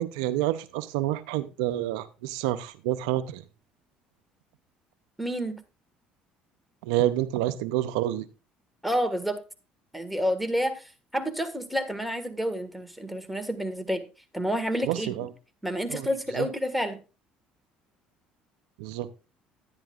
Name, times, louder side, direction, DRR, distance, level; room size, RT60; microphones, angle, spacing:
voice 1, 0.0-3.4 6.8-8.2 14.8-15.3 15.9-16.1 16.4-16.5 18.8-19.1, right 13 dB, 90° right, 0.6 m, -28 dB
voice 2, 5.2-5.6 8.8-9.4 9.9-10.8 11.1-14.0 14.3-15.1 15.6-17.0, equal, ahead, 1.6 m, -29 dB
10.5 x 10.0 x 2.4 m
supercardioid pair, 85°, 4 cm